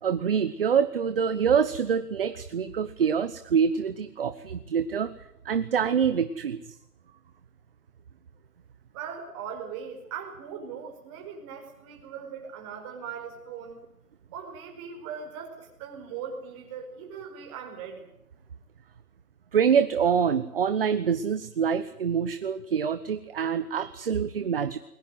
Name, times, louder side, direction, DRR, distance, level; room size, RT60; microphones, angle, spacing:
voice 1, 0.0-5.1 5.4-6.6 19.5-24.8, right 7 dB, 40° right, 11 dB, 1.2 m, -25 dB
voice 2, 8.9-13.8 14.3-18.1, right 7 dB, 20° right, 3 dB, 5.0 m, -39 dB
21.5 x 20.5 x 7.8 m, 0.83 s
hypercardioid pair, 155°, 46 cm